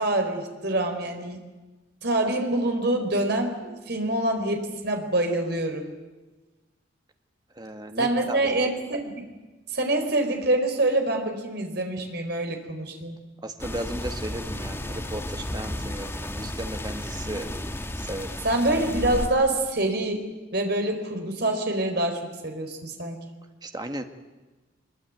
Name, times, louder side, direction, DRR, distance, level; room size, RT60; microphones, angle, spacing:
voice 1, 0.0-1.4 2.0-5.9 8.0-9.3 9.7-13.2 18.4-20.2 20.5-23.2, right 1 dB, 55° right, 4 dB, 4.3 m, -26 dB
voice 2, 7.6-8.4 13.4-17.5 18.0-18.4 23.6-24.0, right 1 dB, 20° right, 6 dB, 1.7 m, -35 dB
sound 1, 13.6-19.3, left 1 dB, 10° left, 1.4 m, -33 dB
25.0 x 22.0 x 9.4 m, 1.2 s
head